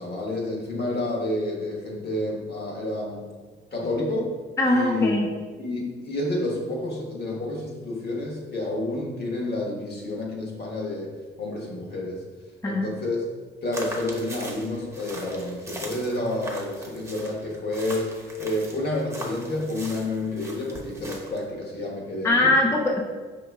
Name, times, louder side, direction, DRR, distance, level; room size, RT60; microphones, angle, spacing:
voice 1, 0.0-3.3 3.7-4.4 4.6-5.1 5.6-12.2 12.6-13.2 13.6-22.6, left 1 dB, 55° left, -2 dB, 1.3 m, -29 dB
voice 2, 4.6-5.3 12.6-12.9 22.2-23.0, left 2 dB, 15° left, -1 dB, 0.5 m, -21 dB
sound 1, 13.7-21.5, right 1 dB, 15° right, 1.0 m, -40 dB
4.9 x 3.0 x 3.5 m, 1.4 s
cardioid pair, 90°, 20 cm